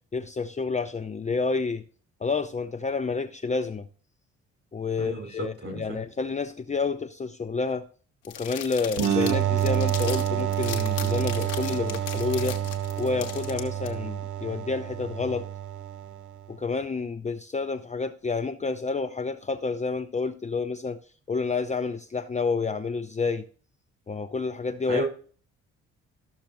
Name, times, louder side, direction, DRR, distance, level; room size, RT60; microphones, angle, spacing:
voice 1, 0.1-1.9 2.2-3.9 4.7-7.9 8.2-12.6 13.0-15.5 16.5-21.0 21.3-23.5 24.1-25.0, left 4 dB, 20° left, 0.6 m, -29 dB
voice 2, 5.0-6.0 24.9-25.0, right 1 dB, 40° right, 5.2 m, -33 dB
sound 1, 8.2-13.9, left 10 dB, 85° left, 1.1 m, -38 dB
sound 2, 9.0-16.4, right 11 dB, 55° right, 0.8 m, -28 dB
13.5 x 6.3 x 3.0 m
hypercardioid pair, 45°, 36 cm